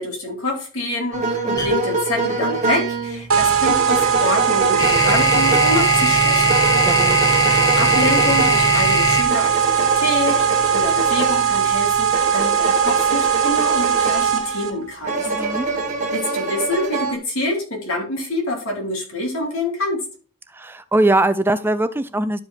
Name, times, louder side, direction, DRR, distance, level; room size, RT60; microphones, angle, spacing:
voice 1, 0.0-6.6 7.8-15.3 16.1-20.0, left 2 dB, 75° left, 0 dB, 3.1 m, -26 dB
sound 1, 1.1-14.6 15.0-17.1, right 3 dB, 35° right, 1.4 m, -25 dB
sound 2, 1.6-1.7 3.8-10.8, left 1 dB, 20° left, 1.2 m, -20 dB
sound 3, 3.3-14.7, right 8 dB, 80° right, 1.3 m, -19 dB
voice 2, 6.8-7.2 15.2-15.7 20.5-22.4, right 2 dB, 10° right, 12 dB, 0.4 m, -21 dB
12.0 x 5.1 x 3.4 m, 0.38 s
head